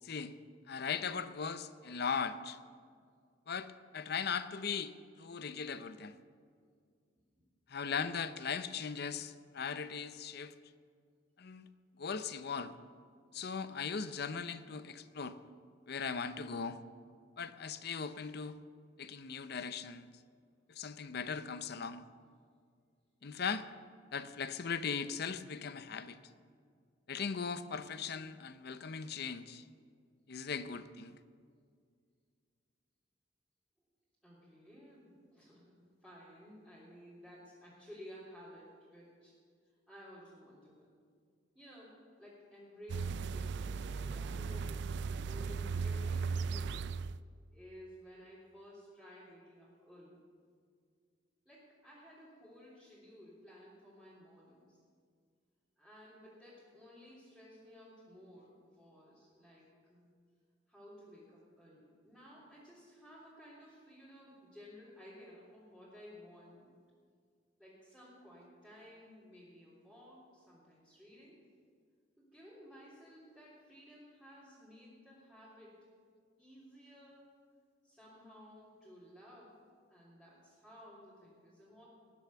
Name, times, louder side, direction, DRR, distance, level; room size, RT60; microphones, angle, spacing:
voice 1, 0.0-0.3 0.7-2.6 3.5-6.1 7.7-10.5 11.4-11.7 12.0-12.7 13.3-15.4 15.9-16.8 17.4-18.6 19.0-20.1 20.7-22.0 23.2-23.6 24.1-26.2 27.1-29.6 30.3-31.2, left 6 dB, 60° left, 12 dB, 0.6 m, -39 dB
voice 2, 34.2-39.3 39.6-40.9 41.5-46.8 47.5-50.2 51.4-54.8 55.8-60.1 60.7-66.8 67.6-71.4 72.2-75.9 76.4-77.3 77.8-79.6 79.9-81.8, equal, 5° right, -11 dB, 3.3 m, -55 dB
sound 1, 42.9-47.2, right 5 dB, 65° right, 0.3 m, -37 dB
19.0 x 7.1 x 7.0 m, 2.1 s
head